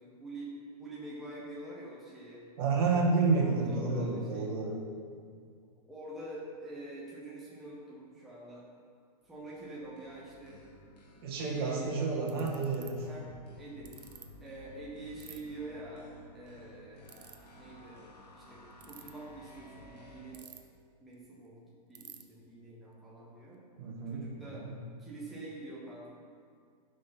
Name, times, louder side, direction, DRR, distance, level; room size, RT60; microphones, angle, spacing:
voice 1, 0.0-2.4 3.0-4.5 5.9-8.6 9.2-10.6 11.4-12.0 13.1-13.3 13.6-13.9 14.4-17.1 17.6-18.0 18.3-20.5 21.0-23.6 24.1-24.7 25.0-26.1, right 2 dB, ahead, -7 dB, 0.6 m, -46 dB
voice 2, 2.6-4.8 11.2-13.1 23.8-24.2 24.5-24.7, right 4 dB, 35° right, -2 dB, 1.7 m, -30 dB
sound 1, 9.2-20.3, left 1 dB, 80° left, 2.1 m, -55 dB
Ratchet pawl, 12.3-12.9 13.9-14.2 15.2-15.4 17.0-17.4 18.7-19.1 20.3-20.8 21.1-21.2 21.4-21.5 21.9-22.2, right 9 dB, 75° right, 1.0 m, -49 dB
11.5 x 5.4 x 5.6 m, 2.1 s
hypercardioid pair, 180°, 20 cm